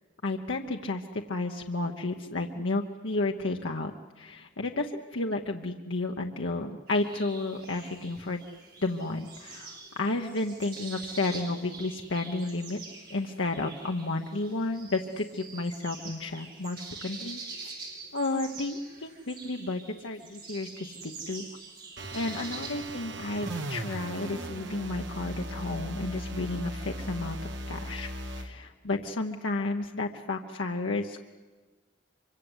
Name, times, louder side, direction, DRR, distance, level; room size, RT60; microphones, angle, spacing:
voice 1, 0.2-8.4 8.8-12.8 13.1-17.7 18.1-21.5 22.1-27.4 27.7-28.1 28.3-31.3, left 2 dB, 85° left, 2 dB, 1.1 m, -32 dB
sound 1, 6.9-22.7, right 4 dB, 50° right, 7.3 m, -45 dB
sound 2, 22.0-28.5, right 1 dB, 80° right, 1.9 m, -38 dB
25.0 x 24.5 x 8.2 m, 1.3 s
head